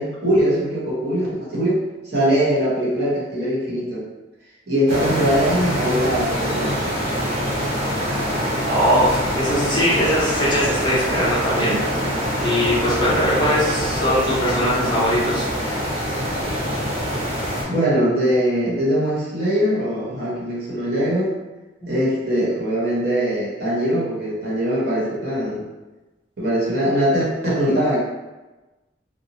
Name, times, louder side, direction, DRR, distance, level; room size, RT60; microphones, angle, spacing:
voice 1, 0.0-4.0 4.7-6.7 17.5-21.3 21.9-25.7 26.4-28.0, equal, 65° right, -6 dB, 1.0 m, -21 dB
sound 1, 4.9-17.6, equal, 35° right, 0.9 m, -24 dB
voice 2, 8.6-11.8 12.4-15.5 21.8-22.0, equal, 25° left, -7 dB, 0.8 m, -21 dB
2.8 x 2.0 x 2.9 m, 1.1 s
head